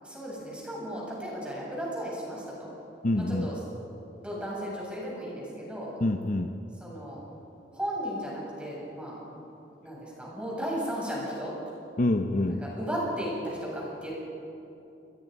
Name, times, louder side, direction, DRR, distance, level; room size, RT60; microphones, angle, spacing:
voice 1, 0.0-2.7 3.1-3.6 4.1-5.9 6.8-7.2 7.7-9.2 9.8-11.6 12.4-14.1, equal, 5° right, -5 dB, 7.7 m, -35 dB
voice 2, 3.0-3.5 6.0-6.5 12.0-12.6, left 1 dB, 45° left, 6 dB, 0.8 m, -26 dB
28.5 x 22.0 x 5.4 m, 2.8 s
head